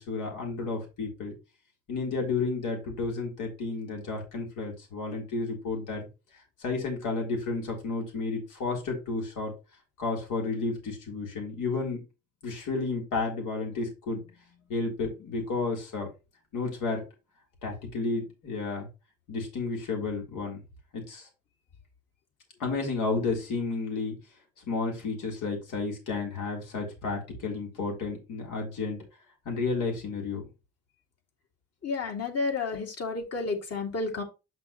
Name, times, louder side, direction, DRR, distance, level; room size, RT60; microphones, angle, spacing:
voice 1, 0.0-1.3 1.9-6.1 6.6-9.5 10.0-12.1 12.4-14.3 14.7-16.1 16.5-17.0 17.6-18.9 19.3-20.6 20.9-21.3 22.6-24.2 24.6-29.0 29.5-30.4, left 3 dB, 85° left, 0 dB, 3.9 m, -32 dB
voice 2, 31.8-34.2, left 4 dB, 55° left, 2 dB, 2.6 m, -31 dB
7.9 x 5.9 x 3.1 m, 0.27 s
cardioid pair, 90°, 30 cm